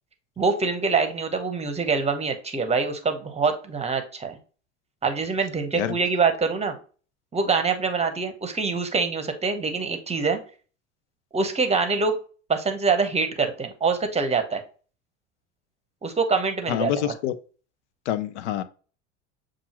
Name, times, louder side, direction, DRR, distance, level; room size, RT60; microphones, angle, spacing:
voice 1, 0.4-4.4 5.0-6.8 7.3-10.4 11.3-12.2 12.5-14.6 16.0-17.1, right 4 dB, 20° right, 0.9 m, -25 dB
voice 2, 16.7-17.4 18.1-18.6, left 11 dB, 80° left, 0.5 m, -26 dB
7.1 x 2.5 x 2.9 m
hypercardioid pair, 85°, 34 cm